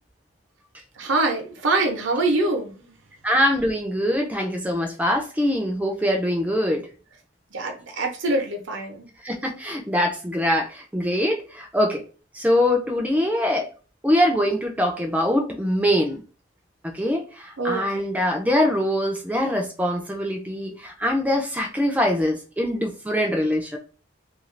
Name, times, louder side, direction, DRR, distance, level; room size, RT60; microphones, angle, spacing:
voice 1, 1.0-2.9 7.5-9.1 17.6-18.0, right 2 dB, 75° right, 3 dB, 0.8 m, -24 dB
voice 2, 3.2-6.9 9.2-12.0 12.3-13.7 14.0-16.2 16.9-23.8, left 1 dB, 10° right, 2 dB, 0.4 m, -23 dB
2.5 x 2.4 x 3.1 m, 0.36 s
head